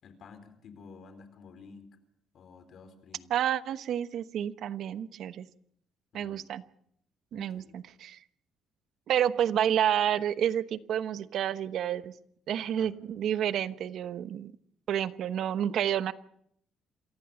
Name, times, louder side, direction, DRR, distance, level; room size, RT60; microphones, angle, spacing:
voice 1, 0.0-2.0 2.3-3.3 6.1-6.4 7.3-7.8 12.8-12.9, left 5 dB, 60° left, 10 dB, 4.2 m, -51 dB
voice 2, 3.3-5.5 6.1-6.6 7.3-8.2 9.1-12.1 12.5-14.5 14.9-16.1, right 10 dB, 70° right, 13 dB, 1.1 m, -29 dB
27.5 x 15.0 x 7.1 m, 0.68 s
cardioid pair, 90°, 0 cm